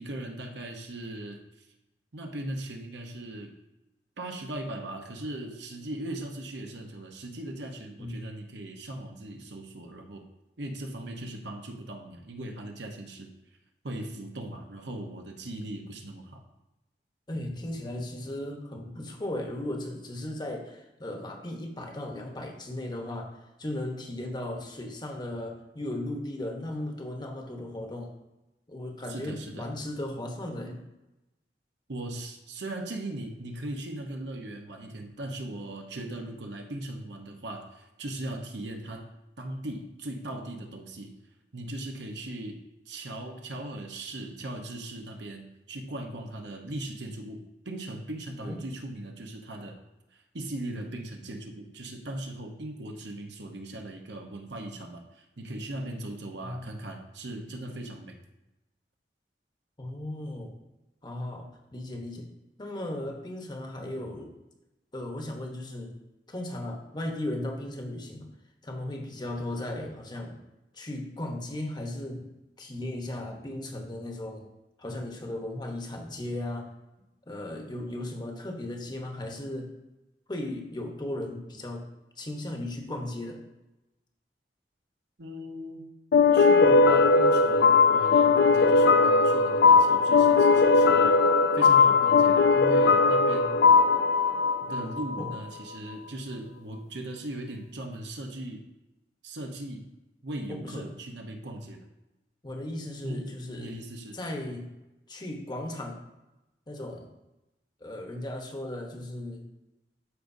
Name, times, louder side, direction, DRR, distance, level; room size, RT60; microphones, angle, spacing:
voice 1, 0.0-1.4 2.1-3.5 4.2-10.3 10.6-13.3 13.8-16.4 29.1-29.7 31.9-39.1 39.4-41.1 41.5-49.8 50.1-58.2 85.2-85.9 86.3-91.2 91.5-93.7 94.6-98.6 99.2-99.9 100.2-101.8 103.0-103.3 103.6-104.2, right 1 dB, 75° right, 3 dB, 1.0 m, -38 dB
voice 2, 17.3-28.1 28.7-30.8 48.4-48.6 56.4-56.7 59.8-60.5 61.0-62.3 62.6-64.3 64.9-65.9 66.3-68.3 68.6-70.3 70.7-72.2 72.6-74.5 74.8-76.7 77.3-79.7 80.3-81.8 82.2-83.4 95.2-95.3 100.5-100.8 102.4-103.7 104.1-104.7 105.1-106.0 106.7-107.1 107.8-109.5, left 1 dB, 25° left, 2 dB, 1.1 m, -36 dB
sound 1, 86.1-95.4, left 4 dB, 65° left, 0.4 m, -19 dB
12.5 x 5.2 x 2.7 m, 0.97 s
head